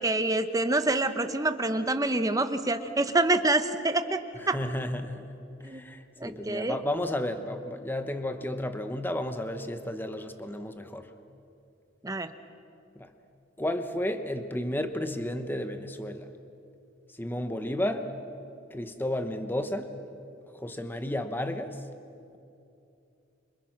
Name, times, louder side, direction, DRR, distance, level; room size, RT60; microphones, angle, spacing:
voice 1, 0.0-4.2 4.5-4.6 5.6-5.8 6.2-6.8 12.0-12.3, right 2 dB, 20° right, 9 dB, 1.0 m, -26 dB
voice 2, 4.5-5.3 5.6-11.1 13.0-13.1 13.6-16.3 17.2-18.1 18.7-19.9 20.5-21.8, left 1 dB, 10° left, 8 dB, 1.1 m, -32 dB
28.0 x 25.5 x 6.0 m, 2.6 s
head